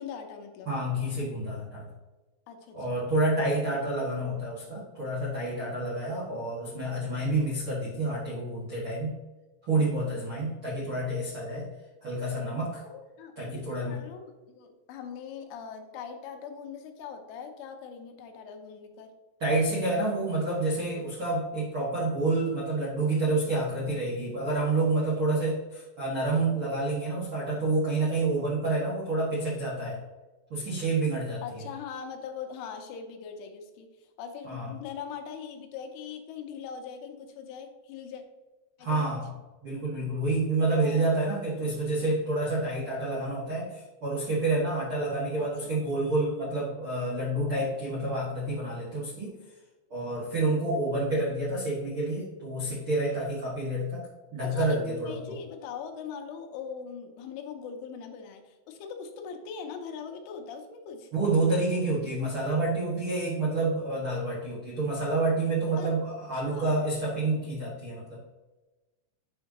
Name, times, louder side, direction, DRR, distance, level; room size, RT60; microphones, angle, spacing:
voice 1, 0.0-0.7 2.5-3.1 10.0-10.7 12.9-19.1 31.4-33.9 34.2-38.2 38.8-39.1 40.8-41.1 41.6-42.1 45.4-45.7 54.4-61.1 65.8-65.9 66.3-67.0, left 6 dB, 80° left, 5 dB, 3.3 m, -41 dB
voice 2, 0.6-1.8 2.7-9.1 9.7-11.7 12.0-12.8 13.3-14.0 19.4-30.0 30.5-31.6 34.4-34.7 38.8-39.3 39.6-49.3 49.9-54.1 54.3-55.3 61.1-68.2, right 2 dB, 65° right, -6 dB, 1.3 m, -28 dB
9.6 x 5.6 x 2.9 m, 1.2 s
omnidirectional pair, 5.6 m